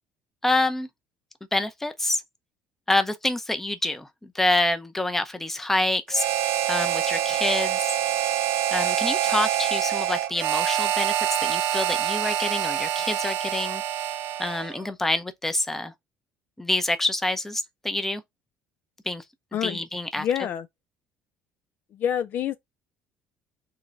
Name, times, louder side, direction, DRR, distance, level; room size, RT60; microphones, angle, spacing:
voice 1, 0.4-0.9 1.5-2.2 2.9-4.1 4.3-6.3 6.7-7.9 8.7-11.1 11.4-13.8 14.4-15.9 16.6-18.2 19.1-19.2 19.5-20.3, left 2 dB, 10° left, 0.7 m, -27 dB
Harmonica, 6.1-14.8, right 11 dB, 70° right, 0.7 m, -26 dB
voice 2, 20.2-20.6 22.0-22.6, left 9 dB, 50° left, 0.4 m, -26 dB
3.7 x 3.2 x 3.9 m
cardioid pair, 120°, 4 cm